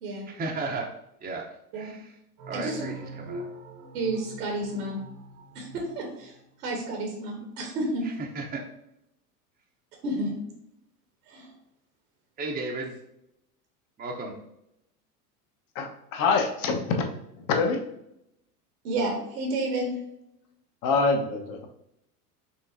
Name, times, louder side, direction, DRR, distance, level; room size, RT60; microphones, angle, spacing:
voice 1, 0.2-0.9 1.2-1.5 1.7-2.2 2.4-3.4 8.0-8.6 12.4-12.9 14.0-14.3, right 3 dB, 20° right, -1 dB, 0.7 m, -34 dB
sound 1, 2.4-6.9, right 2 dB, 55° right, 1.0 m, -43 dB
voice 2, 2.5-2.8 3.9-5.0 5.5-6.3 6.6-8.0 10.0-10.3 11.3-11.5 18.8-19.9, right 1 dB, 75° right, 1 dB, 1.3 m, -30 dB
voice 3, 15.7-17.0 17.5-17.8 20.8-21.7, left 4 dB, 45° left, 2 dB, 1.1 m, -25 dB
5.6 x 3.5 x 2.6 m, 0.79 s
hypercardioid pair, 90°, 46 cm